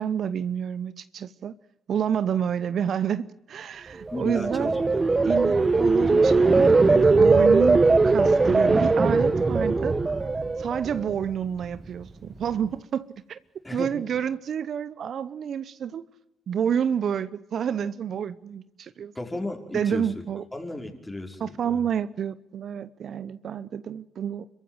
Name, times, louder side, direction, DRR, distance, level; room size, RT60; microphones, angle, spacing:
voice 1, 0.0-1.5 1.9-4.7 5.2-10.0 10.6-13.4 13.7-16.0 16.5-19.1 19.7-20.4 21.4-24.5, right 8 dB, 60° right, 0.8 m, -29 dB
voice 2, 4.1-5.3 13.6-13.9 19.1-20.3 20.5-21.9, left 1 dB, 15° left, 5.3 m, -34 dB
sound 1, 4.1-11.2 11.6-12.0, right 3 dB, 30° right, 1.5 m, -20 dB
26.0 x 15.0 x 9.2 m
hypercardioid pair, 50°, 0 cm